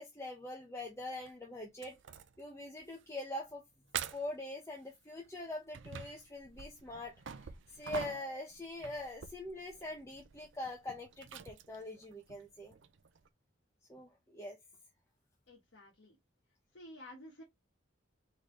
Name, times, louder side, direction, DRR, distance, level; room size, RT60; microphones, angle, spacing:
voice 1, 0.0-2.0 2.4-3.6 4.1-12.7 13.9-14.6, left 1 dB, 15° left, 0.8 m, -43 dB
sound 1, 1.2-1.3 1.8-2.5 2.8-3.0 3.4-3.5 3.9-4.4 5.2-13.3, right 7 dB, 70° right, 0.5 m, -47 dB
voice 2, 15.5-16.2 16.7-17.4, left 1 dB, 70° left, 1.4 m, -52 dB
3.8 x 3.7 x 3.1 m
head